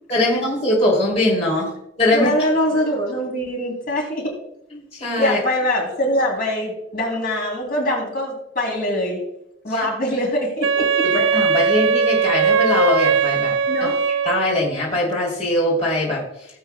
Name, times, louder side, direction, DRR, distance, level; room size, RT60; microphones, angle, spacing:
voice 1, 0.1-2.3 4.7-5.4 9.7-9.8 10.1-10.2 11.0-13.5 14.1-16.2, left 1 dB, 35° left, -4 dB, 2.9 m, -21 dB
voice 2, 2.1-4.3 5.2-9.2 9.6-11.1 13.7-13.9, left 1 dB, 50° left, -1 dB, 3.1 m, -23 dB
Wind instrument woodwind instrument, 10.6-14.7, right 5 dB, 85° right, 0.5 m, -19 dB
17.5 x 8.0 x 2.2 m, 0.80 s
head